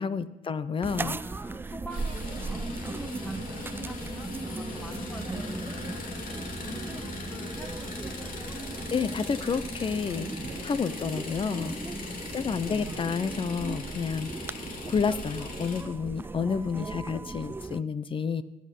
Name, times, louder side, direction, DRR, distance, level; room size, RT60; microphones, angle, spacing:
voice 1, 0.0-1.2 8.9-10.3 10.6-11.8 12.3-14.6 14.9-18.4, left 6 dB, 30° left, 14 dB, 0.8 m, -30 dB
sound 1, 0.8-17.8, right 3 dB, 15° right, 0.4 m, -38 dB
voice 2, 1.2-8.3 10.2-10.6 11.7-12.2 16.7-17.0, left 1 dB, 10° left, 3 dB, 1.4 m, -45 dB
sound 2, 1.9-15.8, left 3 dB, 55° left, 2.9 m, -40 dB
16.0 x 10.0 x 5.5 m, 1.2 s
cardioid pair, 110°, 17 cm